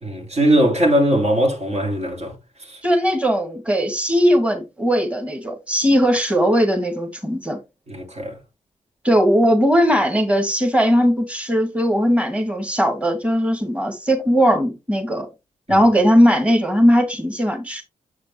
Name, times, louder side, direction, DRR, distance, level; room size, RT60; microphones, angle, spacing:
voice 1, 0.0-2.3 2.7-2.8 7.9-8.3, right 1 dB, 55° right, 3.1 m, -19 dB
voice 2, 2.8-7.6 9.0-15.3 15.7-17.8, equal, 10° right, 2.1 m, -18 dB
7.6 x 5.0 x 3.3 m
cardioid pair, 55°, 14 cm